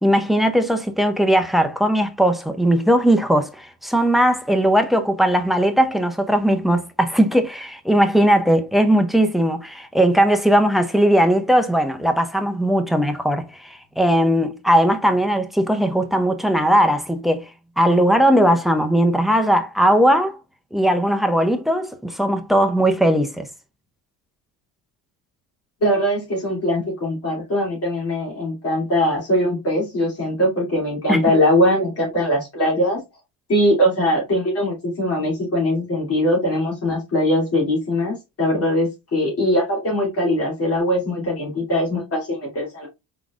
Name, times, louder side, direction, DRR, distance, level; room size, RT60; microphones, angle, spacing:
voice 1, 0.0-17.5 17.8-20.4 20.7-23.5 31.1-31.2, right 1 dB, ahead, 0.5 m, -18 dB
voice 2, 25.8-33.0 33.5-42.9, equal, 40° left, 2.6 m, -21 dB
4.9 x 3.8 x 2.4 m
cardioid pair, 135°, 34 cm